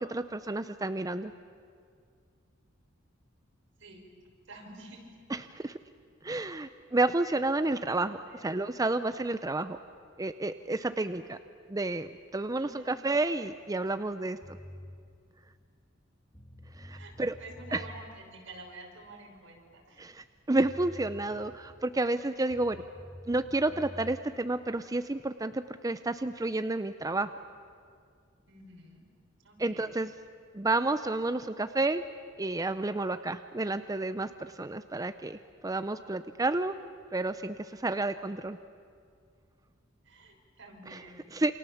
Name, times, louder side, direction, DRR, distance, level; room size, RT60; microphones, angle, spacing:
voice 1, 0.0-1.3 5.3-5.8 6.2-9.8 10.2-11.4 11.7-14.4 16.8-17.3 17.7-17.8 20.0-22.8 23.3-27.3 29.6-30.1 30.5-32.0 32.4-36.8 37.1-38.6 40.9-41.0 41.3-41.5, right 2 dB, 20° right, 10 dB, 0.6 m, -30 dB
voice 2, 4.5-5.2 8.2-8.5 10.8-11.2 12.5-12.9 16.9-17.1 17.4-20.0 28.5-29.0 29.4-30.0 40.0-41.2, right 2 dB, 75° right, 0 dB, 5.9 m, -49 dB
sound 1, 14.4-15.0 16.0-16.1 16.3-18.0 20.2-20.3 20.6-21.8 22.5-24.2, equal, 15° left, 2.9 m, -48 dB
28.5 x 26.5 x 7.2 m, 2.2 s
head